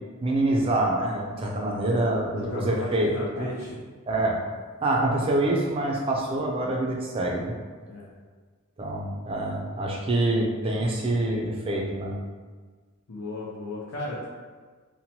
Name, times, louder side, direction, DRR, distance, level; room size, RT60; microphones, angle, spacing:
voice 1, 0.2-3.5 4.1-4.4 4.8-7.6 8.8-12.1, right 1 dB, 25° right, -1 dB, 0.3 m, -26 dB
voice 2, 2.3-3.8 7.9-8.1 13.1-14.2, left 2 dB, 70° left, -7 dB, 0.5 m, -35 dB
2.8 x 2.1 x 2.8 m, 1.5 s
head